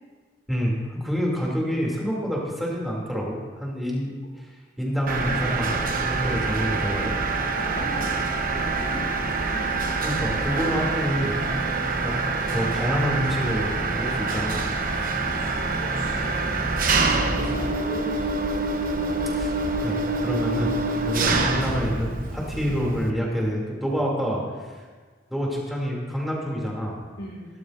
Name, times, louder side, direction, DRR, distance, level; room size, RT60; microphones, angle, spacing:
voice 1, 0.5-4.5 4.8-7.2 10.0-11.4 12.0-12.1 12.5-14.7 19.3-20.7 21.1-24.4 25.3-27.0, equal, ahead, -4 dB, 2.8 m, -27 dB
Mechanisms, 5.1-23.1, right 3 dB, 50° right, 1.0 m, -26 dB
voice 2, 7.5-8.4 8.7-9.8 15.2-18.5 27.2-27.5, left 1 dB, 85° left, -5 dB, 2.2 m, -40 dB
17.5 x 13.0 x 2.6 m, 1.4 s
head